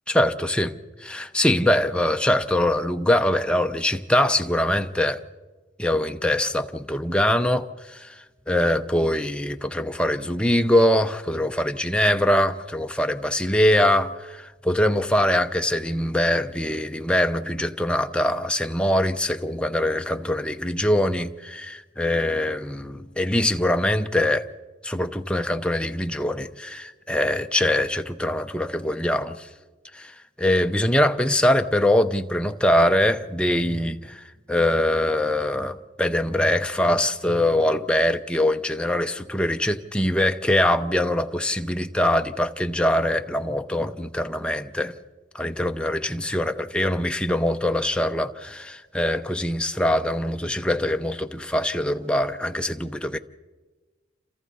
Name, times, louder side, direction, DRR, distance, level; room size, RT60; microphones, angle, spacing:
voice 1, 0.1-0.7 1.0-5.2 5.8-8.1 8.5-24.5 24.8-29.5 29.9-30.1 30.4-45.0 45.3-53.2, left 1 dB, 5° left, 0.7 m, -23 dB
28.0 x 27.5 x 4.1 m
head